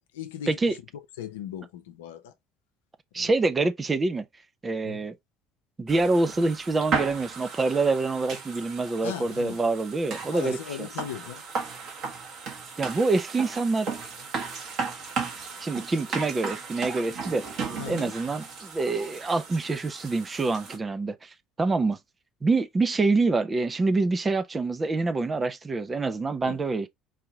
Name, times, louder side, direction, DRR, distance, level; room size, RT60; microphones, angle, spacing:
voice 1, 0.1-2.3 3.2-3.3 4.8-5.1 9.0-9.6 10.3-11.4 17.8-18.1 26.4-26.6, left 9 dB, 70° left, 0.7 m, -38 dB
voice 2, 3.1-4.2 4.6-5.1 5.8-10.9 12.8-13.9 15.6-17.4 17.9-22.0 22.4-26.9, right 3 dB, 25° right, 0.7 m, -26 dB
sound 1, 5.9-20.8, right 5 dB, 50° right, 1.6 m, -35 dB
4.9 x 2.9 x 3.3 m
figure-of-eight pair, 60°, 0 cm